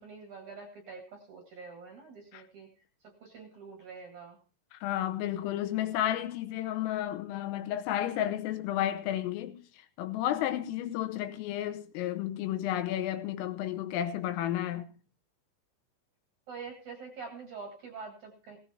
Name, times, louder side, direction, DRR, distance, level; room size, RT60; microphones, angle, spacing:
voice 1, 0.0-2.7 3.0-4.4 16.5-18.6, right 5 dB, 55° right, 2.3 m, -45 dB
voice 2, 4.7-9.6 10.0-14.9, left 12 dB, 90° left, 3.6 m, -32 dB
17.0 x 16.5 x 2.8 m
omnidirectional pair, 5.7 m